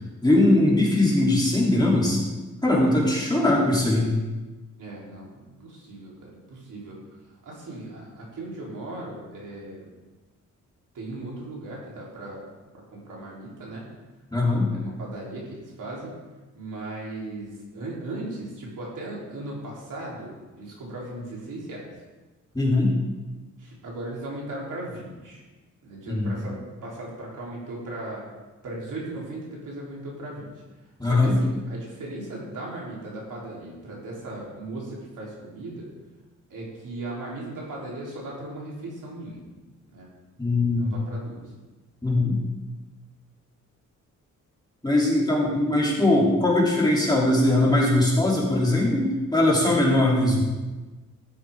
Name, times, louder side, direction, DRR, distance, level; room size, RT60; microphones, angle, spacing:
voice 1, 0.2-2.2 2.6-4.1 14.3-14.7 22.5-22.9 26.1-26.3 31.0-31.4 40.4-40.9 42.0-42.4 44.8-50.4, left 1 dB, 15° left, -4 dB, 3.1 m, -21 dB
voice 2, 4.8-7.0 7.2-9.9 10.9-12.5 12.9-13.9 14.7-16.1 16.5-21.9 23.6-25.4 25.8-28.3 28.6-30.5 31.0-35.9 36.5-39.4 39.9-40.1 40.7-41.5, right 2 dB, 75° right, -4 dB, 3.5 m, -37 dB
13.0 x 7.5 x 3.6 m, 1.2 s
cardioid pair, 80°, 32 cm